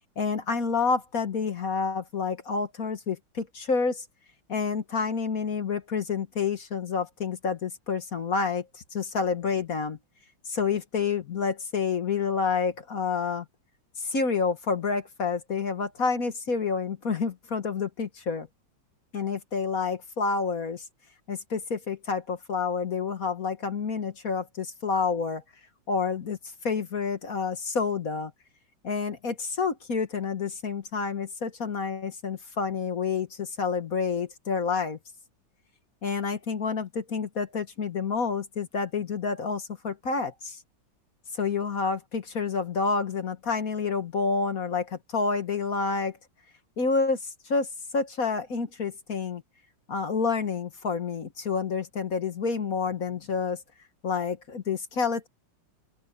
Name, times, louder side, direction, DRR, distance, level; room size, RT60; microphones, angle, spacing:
voice 1, 0.2-4.0 4.5-10.0 10.5-13.4 14.0-18.5 19.1-20.8 21.3-25.4 25.9-26.4 26.6-28.3 28.8-35.0 36.0-40.6 41.3-46.2 46.8-47.7 47.9-49.4 49.9-53.6 54.0-55.3, left 5 dB, 50° left, 1.8 m, -29 dB
open air
omnidirectional pair, 2.1 m